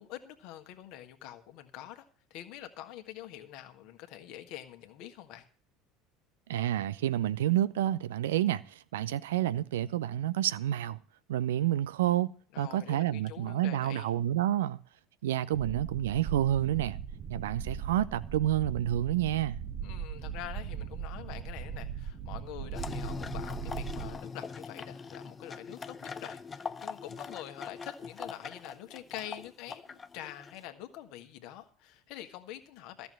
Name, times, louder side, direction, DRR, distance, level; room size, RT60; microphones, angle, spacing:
voice 1, 0.0-5.5 12.5-14.1 19.8-33.1, left 12 dB, 55° left, 1.5 m, -45 dB
voice 2, 6.5-8.6 8.9-11.0 11.3-12.3 12.6-14.8 15.2-17.0 17.3-19.6, right 12 dB, 70° right, 0.6 m, -29 dB
sound 1, 15.5-24.2, right 8 dB, 45° right, 1.1 m, -39 dB
sound 2, 22.7-30.7, left 5 dB, 25° left, 0.7 m, -41 dB
14.0 x 7.0 x 7.6 m
figure-of-eight pair, 70°, 0 cm